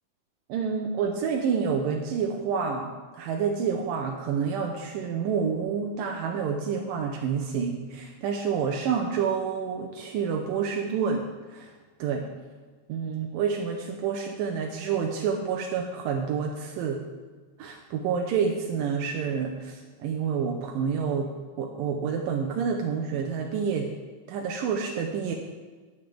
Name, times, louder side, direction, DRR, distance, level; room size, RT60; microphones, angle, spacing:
voice 1, 0.5-11.2 11.5-11.7 12.0-12.3 12.9-17.0 17.6-21.3 21.6-23.9 24.3-25.3, right 6 dB, 85° right, 1 dB, 2.5 m, -28 dB
19.5 x 6.8 x 3.5 m, 1.4 s
omnidirectional pair, 3.9 m